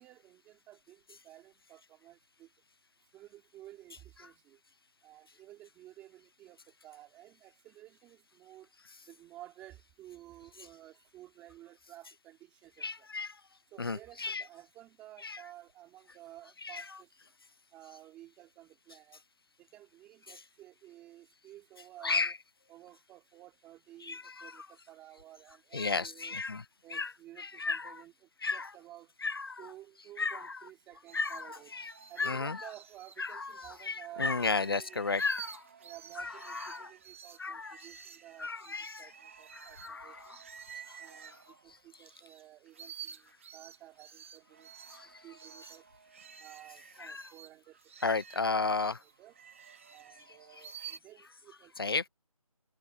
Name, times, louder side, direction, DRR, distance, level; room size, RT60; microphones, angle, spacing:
voice 1, 0.0-2.5 3.1-4.6 5.0-6.6 6.8-8.7 9.1-12.8 13.7-17.1 17.7-19.2 19.7-22.4 22.7-26.3 26.8-28.1 28.5-29.1 29.6-31.7 32.1-35.0 35.8-39.1 39.4-39.8 40.0-40.2 41.0-41.3 41.8-43.2 43.5-44.7 45.2-45.8 46.4-47.7 49.2-49.3 49.9-52.1, right 14 dB, 5° right, 2.7 m, -53 dB
voice 2, 12.8-13.4 13.8-14.4 15.2-15.4 16.6-16.8 22.0-22.3 24.0-24.5 25.7-26.6 26.9-27.1 27.4-27.9 28.4-28.7 29.2-29.6 30.2-30.6 31.1-31.9 32.2-32.6 33.2-35.6 36.2-36.9 37.4-37.7 38.4-39.1 39.5-40.2 40.9-41.0 44.9-45.1 47.0-47.2 48.0-49.0 51.8-52.1, left 4 dB, 40° left, 0.7 m, -33 dB
sound 1, 31.1-33.9 34.2-42.4 42.7-51.0, right 8 dB, 20° right, 1.8 m, -51 dB
figure-of-eight pair, 170°, 19 cm